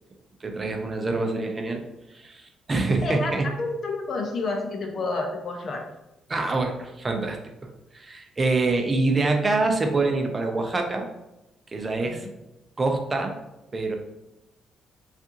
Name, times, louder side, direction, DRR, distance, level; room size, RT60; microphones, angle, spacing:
voice 1, 0.4-1.8 2.1-3.5 6.3-7.4 7.9-11.1 11.7-12.3 12.8-13.3 13.7-13.9, right 3 dB, 30° right, 3 dB, 0.5 m, -25 dB
voice 2, 3.0-5.8 12.0-12.3, left 3 dB, 50° left, 3 dB, 0.6 m, -30 dB
3.5 x 2.4 x 2.8 m, 0.97 s
cardioid pair, 90°, 0 cm